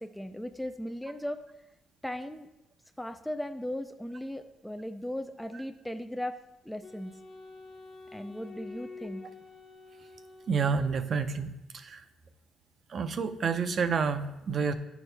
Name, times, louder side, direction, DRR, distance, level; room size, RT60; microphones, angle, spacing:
voice 1, 0.0-1.4 2.0-2.5 3.0-6.4 6.6-7.1 8.1-9.2, left 1 dB, 5° left, 7 dB, 0.3 m, -37 dB
Wind instrument woodwind instrument, 6.8-11.3, left 3 dB, 45° left, 1.1 m, -48 dB
voice 2, 10.5-12.0 12.9-14.7, right 5 dB, 55° right, 9 dB, 0.5 m, -29 dB
9.5 x 4.7 x 3.3 m, 0.91 s
cardioid pair, 90°, 0 cm